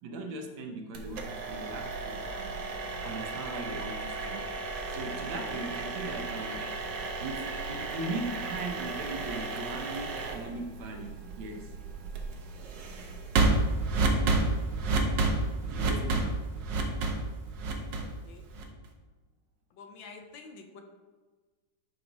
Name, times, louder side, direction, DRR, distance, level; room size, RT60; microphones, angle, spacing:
voice 1, 0.0-2.5 3.0-4.5 4.9-11.7 15.6-16.4, right 2 dB, 90° right, 3 dB, 1.7 m, -39 dB
sound 1, 0.9-18.9, right 3 dB, 70° right, 1.5 m, -32 dB
voice 2, 18.0-18.5 19.7-20.8, left 4 dB, 75° left, 5 dB, 1.5 m, -49 dB
10.5 x 4.9 x 3.0 m, 1.3 s
omnidirectional pair, 2.1 m